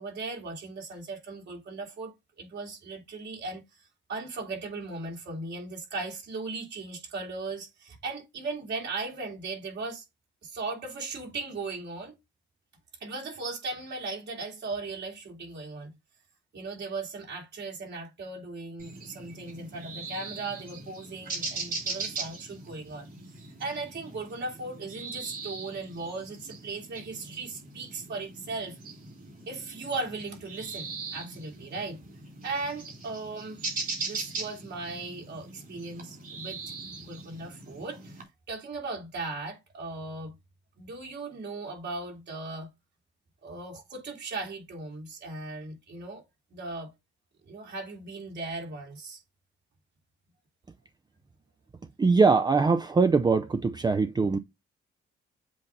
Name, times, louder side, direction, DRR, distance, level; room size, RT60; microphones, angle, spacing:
voice 1, 0.0-10.0 10.4-12.1 13.0-15.9 16.5-23.1 23.6-28.8 29.5-32.0 32.4-33.6 34.0-38.2 38.5-40.3 40.8-42.7 43.4-46.2 46.5-46.9 47.4-49.2, right 3 dB, 60° right, 3.4 m, -37 dB
sound 1, 18.8-38.2, right 3 dB, 45° right, 3.8 m, -40 dB
voice 2, 52.0-54.4, right 4 dB, 20° right, 0.5 m, -22 dB
7.6 x 2.8 x 5.3 m
cardioid pair, 90°, 20 cm